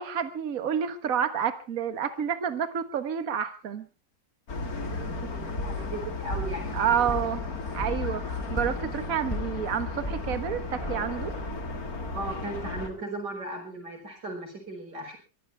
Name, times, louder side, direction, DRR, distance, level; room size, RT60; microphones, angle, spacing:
voice 1, 0.0-3.9 6.7-7.4 7.7-11.3, right 8 dB, 55° right, 10 dB, 1.8 m, -29 dB
sound 1, 4.5-12.9, left 3 dB, 55° left, 2.7 m, -34 dB
voice 2, 4.7-7.1 12.1-15.2, right 2 dB, 70° right, 3 dB, 6.6 m, -37 dB
sound 2, 6.3-11.4, left 1 dB, 15° left, 5.8 m, -38 dB
23.0 x 15.5 x 3.5 m, 0.33 s
omnidirectional pair, 1.9 m